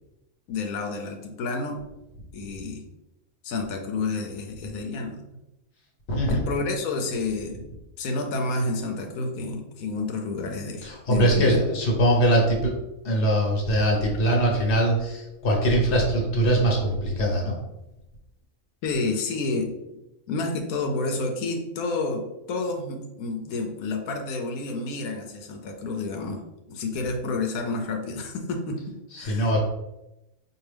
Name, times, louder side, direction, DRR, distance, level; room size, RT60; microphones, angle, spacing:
voice 1, 0.5-1.8 2.3-2.8 3.4-5.2 6.3-7.6 8.0-11.6 18.8-19.8 20.3-26.4 26.7-29.6, left 3 dB, 90° left, 3 dB, 1.1 m, -29 dB
voice 2, 6.1-6.4 10.8-12.7 13.0-17.6 29.2-29.6, right 1 dB, 55° left, -1 dB, 1.2 m, -22 dB
4.6 x 2.5 x 3.2 m, 0.92 s
omnidirectional pair, 1.4 m